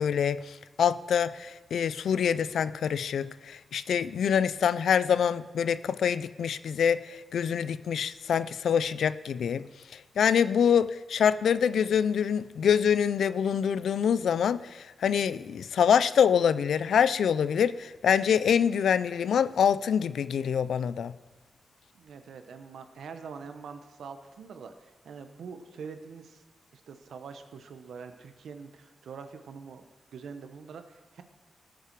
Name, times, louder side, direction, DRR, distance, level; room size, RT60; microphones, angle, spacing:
voice 1, 0.0-9.7 10.2-21.1, left 8 dB, 85° left, 16 dB, 0.4 m, -25 dB
voice 2, 21.9-26.4 26.7-29.8 30.1-31.2, right 5 dB, 85° right, 8 dB, 0.9 m, -44 dB
18.0 x 6.7 x 4.6 m, 1.3 s
wide cardioid pair, 160°, 0 cm